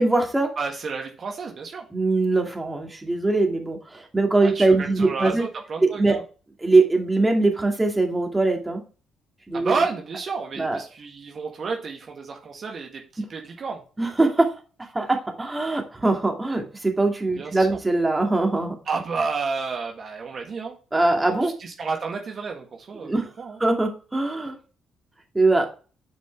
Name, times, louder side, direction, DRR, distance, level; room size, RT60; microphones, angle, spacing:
voice 1, 0.0-0.5 1.9-5.4 5.8-6.2 6.6-8.8 9.5-9.7 10.6-10.8 13.2-13.3 14.0-14.5 14.9-18.7 20.9-21.5 23.0-23.2 23.6-24.6 25.3-25.7, right 2 dB, 20° right, 2 dB, 2.4 m, -22 dB
voice 2, 0.6-1.8 4.4-6.2 9.5-13.8 17.4-17.8 18.9-20.7 21.4-23.6, right 4 dB, 50° right, 1 dB, 1.7 m, -31 dB
10.0 x 5.1 x 3.5 m, 0.36 s
hypercardioid pair, 45°, 0 cm